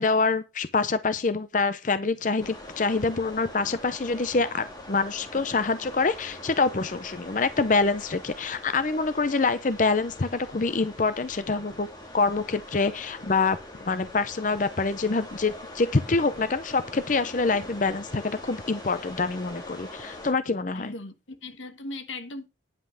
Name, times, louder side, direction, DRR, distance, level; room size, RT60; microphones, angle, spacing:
voice 1, 0.0-11.9 12.1-20.9, left 4 dB, 45° left, 0.6 m, -26 dB
sound 1, 2.4-20.3, left 1 dB, 20° left, 2.2 m, -43 dB
voice 2, 20.7-22.5, left 2 dB, 90° left, 1.4 m, -38 dB
10.0 x 5.7 x 6.3 m
head